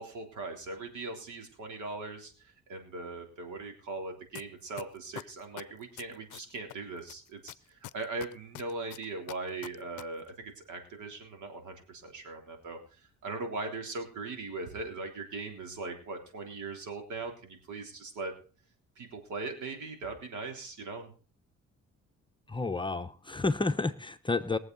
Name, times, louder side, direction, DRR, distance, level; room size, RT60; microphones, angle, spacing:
voice 1, 0.0-18.3 19.0-21.1, right 3 dB, 75° right, 4 dB, 3.5 m, -40 dB
sound 1, 4.3-4.4 4.8-6.7 7.1-10.0 10.3-10.4, left 16 dB, 80° left, 0.6 m, -43 dB
voice 2, 22.5-24.6, left 3 dB, 15° left, 9 dB, 0.9 m, -30 dB
22.0 x 7.7 x 4.0 m, 0.38 s
cardioid pair, 90°, 30 cm